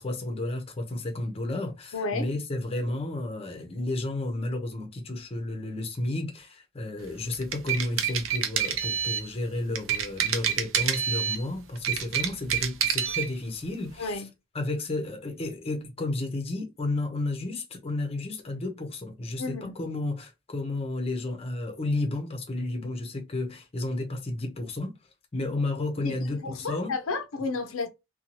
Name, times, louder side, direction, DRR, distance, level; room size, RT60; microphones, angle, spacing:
voice 1, 0.0-14.2 14.5-24.9 25.3-26.9, left 2 dB, 30° left, 0.6 m, -32 dB
voice 2, 1.9-2.3 14.0-14.3 19.4-19.7 26.0-27.9, left 3 dB, 70° left, 0.5 m, -32 dB
sound 1, 7.3-9.3 9.8-11.4 11.8-13.3, right 8 dB, 65° right, 0.5 m, -27 dB
2.6 x 2.2 x 2.9 m
head